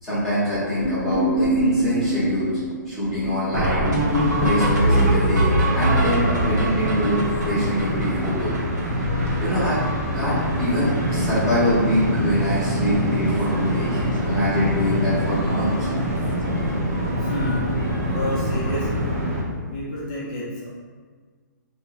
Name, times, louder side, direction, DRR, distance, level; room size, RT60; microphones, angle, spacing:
voice 1, 0.0-2.5 2.9-3.8 4.4-8.5 9.4-9.8 10.1-15.9, equal, ahead, -16 dB, 1.1 m, -24 dB
sound 1, 0.8-9.0 9.3-9.4 9.6-9.9 10.1-10.7 11.0-11.2 12.0-12.1 12.6-12.7 12.9-13.1 15.4-15.5 17.8-17.9, right 1 dB, 60° right, 1.1 m, -23 dB
sound 2, 3.4-8.4 8.9-12.6 12.9-18.8, left 2 dB, 85° left, 0.8 m, -42 dB
sound 3, 4.1-19.4, equal, 45° right, 0.7 m, -25 dB
voice 2, 17.2-17.6 18.0-19.1 19.7-20.7, equal, 20° left, -6 dB, 0.6 m, -30 dB
4.1 x 2.9 x 2.4 m, 1.6 s
hypercardioid pair, 180°, 10 cm